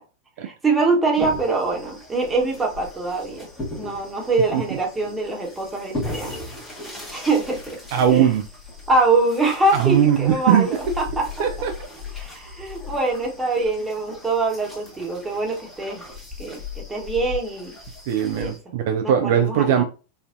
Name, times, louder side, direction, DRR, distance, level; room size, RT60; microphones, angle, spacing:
voice 1, 0.4-3.5 3.8-6.3 7.1-7.8 8.1-8.3 8.9-11.3 12.1-16.0 16.4-17.8 18.3-18.5 19.0-19.8, right 3 dB, 10° right, 1.2 m, -24 dB
sound 1, 1.1-18.6, left 2 dB, 10° left, 1.3 m, -37 dB
voice 2, 7.9-8.5 9.7-10.7 11.4-11.8 18.1-19.8, right 9 dB, 50° right, 0.4 m, -19 dB
4.1 x 2.6 x 2.5 m
figure-of-eight pair, 90°, 0 cm